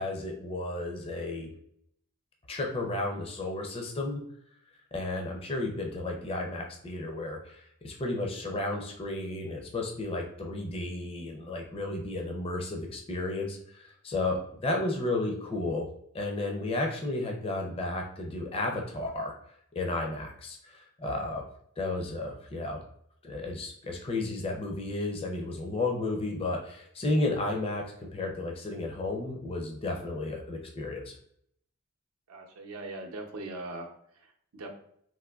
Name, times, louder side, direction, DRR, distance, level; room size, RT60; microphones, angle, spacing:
voice 1, 0.0-1.5 2.5-4.2 4.9-15.9 16.1-19.4 19.7-21.4 21.8-22.8 23.2-31.2, left 2 dB, 25° left, 1 dB, 0.4 m, -33 dB
voice 2, 32.3-34.7, right 2 dB, 80° right, 1 dB, 0.6 m, -41 dB
3.6 x 2.5 x 2.3 m, 0.69 s
head